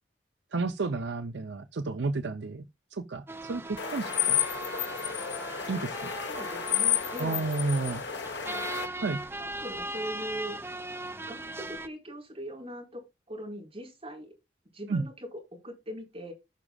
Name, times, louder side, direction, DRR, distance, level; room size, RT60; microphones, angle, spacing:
voice 1, 0.5-2.6 2.9-4.5 5.7-6.0 7.2-8.0 9.0-9.2 14.9-15.0, right 3 dB, 70° right, 0.6 m, -31 dB
sound 1, 3.3-11.9, right 1 dB, 15° right, 0.6 m, -39 dB
sound 2, 3.8-8.9, left 9 dB, 70° left, 1.3 m, -31 dB
voice 2, 6.3-7.4 8.1-8.8 9.4-10.6 11.3-14.3 14.7-16.3, equal, 35° right, 5.3 m, -41 dB
18.5 x 6.1 x 2.4 m
head